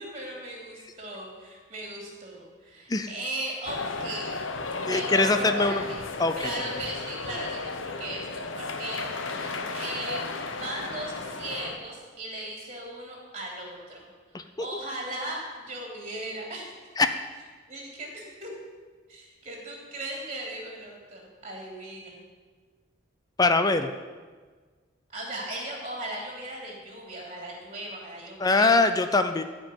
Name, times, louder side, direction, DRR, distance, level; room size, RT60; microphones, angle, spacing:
voice 1, 0.0-4.4 4.9-6.0 6.4-14.1 14.3-16.7 17.7-18.5 19.1-22.1 25.1-28.7, right 1 dB, 30° right, -1 dB, 3.0 m, -38 dB
sound 1, 3.7-11.8, left 3 dB, 85° left, 1.0 m, -34 dB
voice 2, 4.9-5.8 6.2-6.3 14.3-14.4 17.0-17.1 23.4-23.9 28.4-29.4, left 3 dB, 20° left, 9 dB, 0.5 m, -22 dB
14.5 x 5.2 x 9.0 m, 1.5 s
head